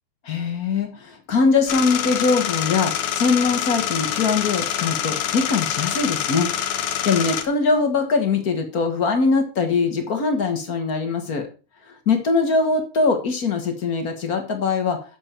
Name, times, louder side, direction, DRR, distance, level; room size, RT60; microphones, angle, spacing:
voice 1, 0.3-6.5 7.0-11.5 11.9-15.0, left 4 dB, 50° left, 5 dB, 1.1 m, -22 dB
sound 1, 1.7-7.4, left 10 dB, 65° left, 2.4 m, -26 dB
12.0 x 7.5 x 4.5 m, 0.34 s
omnidirectional pair, 4.0 m